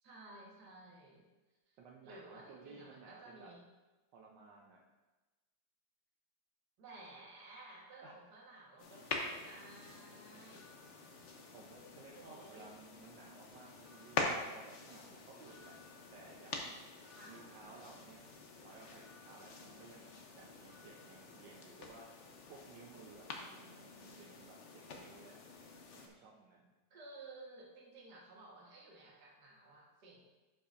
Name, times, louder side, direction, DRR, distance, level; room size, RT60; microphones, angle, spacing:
voice 1, 0.0-1.3 1.7-1.8 2.0-3.6 6.8-10.7 12.1-12.7 17.1-17.4 26.9-30.2, right 2 dB, 65° right, -3 dB, 2.0 m, -55 dB
voice 2, 1.8-3.5 4.1-4.8 8.0-8.1 11.5-15.8 16.1-16.8 17.3-20.1 20.4-22.1 22.5-25.4 25.9-26.7, right 4 dB, 80° right, -2 dB, 1.5 m, -57 dB
sound 1, 8.8-26.1, left 3 dB, 50° left, 1.0 m, -46 dB
sound 2, 10.5-11.8 12.2-13.0 13.8-15.1 15.4-18.4 19.0-20.4 20.7-22.0, left 3 dB, 35° left, 2.7 m, -67 dB
11.5 x 5.9 x 2.5 m, 1.2 s
omnidirectional pair, 1.9 m